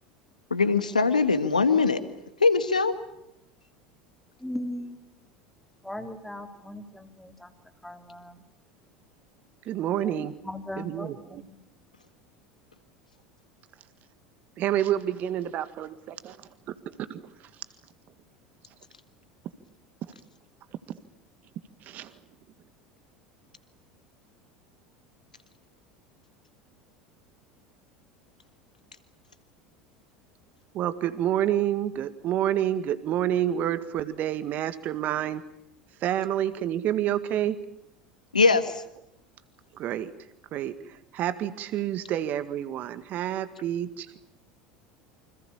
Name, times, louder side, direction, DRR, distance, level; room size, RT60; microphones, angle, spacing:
voice 1, 0.5-2.0 2.4-2.9 38.3-38.8, left 4 dB, 85° left, 11 dB, 1.7 m, -21 dB
voice 2, 4.4-5.0 5.8-7.5 7.8-8.4 10.0-11.5, left 1 dB, 5° left, 6 dB, 3.3 m, -38 dB
voice 3, 9.7-10.3 10.8-11.4 14.6-16.4 17.0-17.2 20.9-21.0 21.8-22.1 30.7-35.4 36.0-37.6 39.8-40.1 40.5-40.7 41.1-44.2, right 11 dB, 45° right, 13 dB, 1.8 m, -28 dB
28.5 x 26.0 x 7.3 m, 0.80 s
figure-of-eight pair, 75°, 4 cm